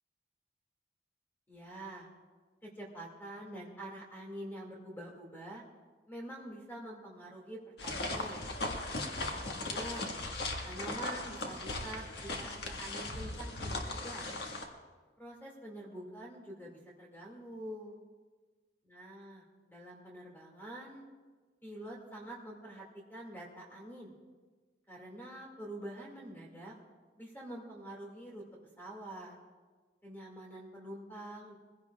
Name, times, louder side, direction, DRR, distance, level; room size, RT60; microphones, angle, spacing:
voice 1, 1.5-2.1 2.6-5.6 6.1-8.5 9.1-10.1 10.6-14.3 15.2-18.0 18.9-21.1 21.6-24.1 24.9-26.7 27.2-28.4 28.8-29.4 30.0-31.5, right 1 dB, 10° left, -2 dB, 2.1 m, -46 dB
sound 1, 7.8-14.6, left 2 dB, 70° left, 1.5 m, -38 dB
22.5 x 16.0 x 2.4 m, 1.4 s
head